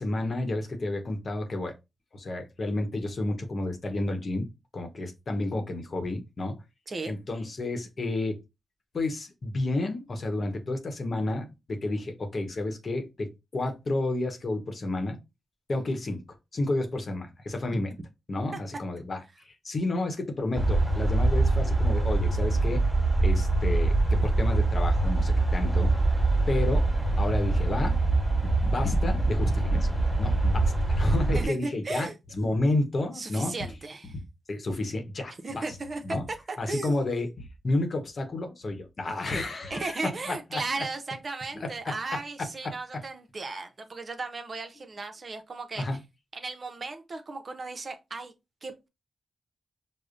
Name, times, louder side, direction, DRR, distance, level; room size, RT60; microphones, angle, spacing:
voice 1, 0.0-1.7 2.1-4.5 4.7-6.5 7.1-8.4 8.9-13.3 13.5-15.2 15.7-16.2 16.5-17.9 18.3-19.2 19.4-22.8 23.2-25.9 26.5-26.9 27.2-28.0 28.4-33.5 34.5-35.6 36.0-36.2 36.6-40.0 40.3-40.8 41.8-42.2 42.6-42.7 45.8-46.0, left 2 dB, 55° left, 0.9 m, -31 dB
sound 1, 20.5-31.5, right 2 dB, ahead, 1.4 m, -24 dB
voice 2, 31.3-32.2 33.1-34.1 35.4-36.2 36.5-37.0 39.7-45.8 46.3-48.3 48.6-48.9, right 3 dB, 50° right, 0.6 m, -35 dB
5.0 x 2.1 x 2.5 m
cardioid pair, 65°, 0 cm